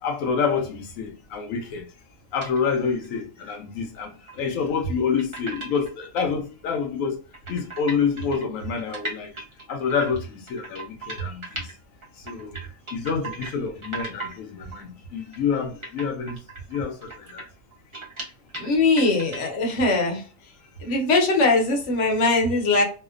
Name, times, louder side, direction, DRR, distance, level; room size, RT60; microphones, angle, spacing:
voice 1, 0.0-1.9 2.3-7.2 7.5-9.3 9.7-11.7 12.2-12.6 12.9-16.4 16.7-17.5, left 6 dB, 90° left, 1.0 m, -27 dB
sound 1, 2.4-2.6 3.0-3.1 4.3-4.4 5.2-6.3 6.7-6.8 7.0-7.1 7.3-11.7 12.0-13.6 13.8-14.4 14.7-14.8 15.3-15.5 15.8-18.7 19.0-19.6, right 2 dB, 30° right, 0.7 m, -37 dB
voice 2, 18.6-20.2 20.8-22.8, left 3 dB, 65° left, 1.1 m, -21 dB
2.7 x 2.0 x 2.3 m
omnidirectional pair, 1.4 m